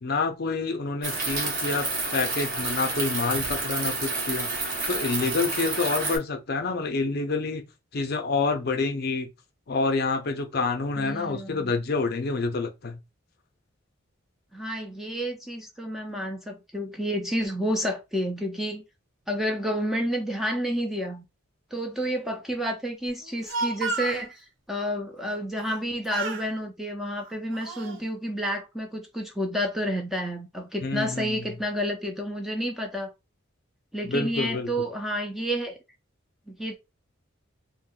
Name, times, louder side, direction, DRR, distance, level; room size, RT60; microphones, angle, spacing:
voice 1, 0.0-4.5 4.9-7.6 7.9-9.3 9.7-13.0 30.8-31.4 34.1-34.7, left 3 dB, 50° left, 0.5 m, -28 dB
sound 1, 1.0-6.2, right 3 dB, 40° right, 0.9 m, -29 dB
voice 2, 11.0-11.7 14.5-18.8 19.3-21.2 21.7-33.1 33.9-35.8 36.5-36.8, equal, ahead, 0.4 m, -30 dB
Speech, 23.2-24.2 25.6-25.8 26.1-26.5 27.2-28.0, right 3 dB, 70° right, 0.6 m, -32 dB
2.6 x 2.1 x 3.7 m
head